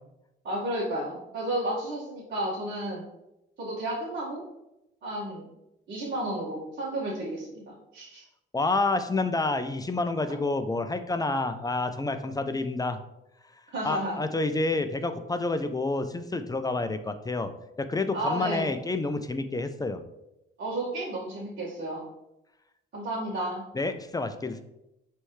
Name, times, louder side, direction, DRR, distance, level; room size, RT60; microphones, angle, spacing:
voice 1, 0.4-3.0 3.6-4.4 5.0-5.5 5.9-8.2 13.7-14.2 18.1-18.7 20.6-22.0 22.9-23.6, right 1 dB, 55° right, -9 dB, 1.9 m, -32 dB
voice 2, 8.5-13.0 13.8-17.5 17.8-20.0 23.7-24.6, left 2 dB, 20° left, 9 dB, 0.5 m, -29 dB
9.6 x 3.4 x 3.2 m, 0.89 s
cardioid pair, 90°, 20 cm